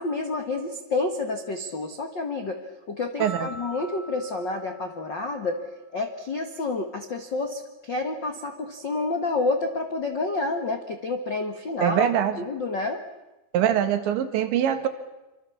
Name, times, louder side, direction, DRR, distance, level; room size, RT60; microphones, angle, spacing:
voice 1, 0.0-2.6 2.9-5.6 5.9-12.1 12.4-13.0, left 3 dB, 75° left, 5 dB, 1.0 m, -29 dB
sound 1, 3.2-5.6, right 2 dB, 30° left, 4.0 m, -42 dB
voice 2, 11.8-12.4 13.5-14.9, right 10 dB, 85° right, 9 dB, 4.0 m, -23 dB
27.0 x 25.5 x 7.2 m, 1.0 s
omnidirectional pair, 5.1 m